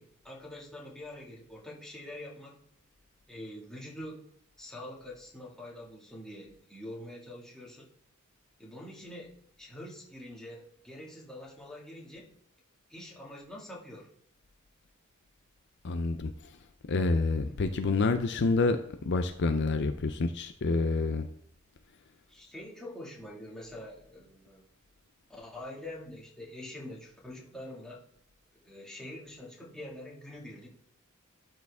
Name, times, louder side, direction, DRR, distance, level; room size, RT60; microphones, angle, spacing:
voice 1, 0.0-2.6 3.3-4.3 4.6-7.9 8.6-12.3 12.9-14.1 17.4-17.5 22.3-24.6 25.3-28.0 28.5-30.7, left 1 dB, 5° left, -5 dB, 2.1 m, -45 dB
voice 2, 15.8-16.3 16.9-21.3, left 3 dB, 55° left, 8 dB, 0.5 m, -28 dB
12.0 x 4.6 x 3.5 m, 0.72 s
head